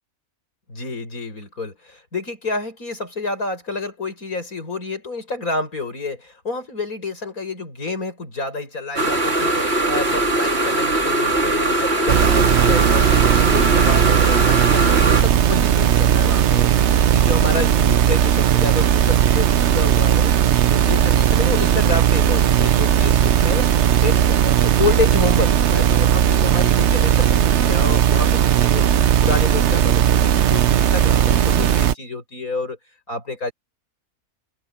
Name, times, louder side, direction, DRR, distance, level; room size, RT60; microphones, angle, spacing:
voice 1, 0.7-20.4 20.7-23.7 24.0-28.8 29.2-32.8 33.1-33.5, left 3 dB, 65° left, 7.6 m, -29 dB
sound 1, 9.0-15.2, right 2 dB, 40° right, 3.3 m, -20 dB
sound 2, 12.1-31.9, right 10 dB, 55° right, 0.9 m, -17 dB
omnidirectional pair, 1.6 m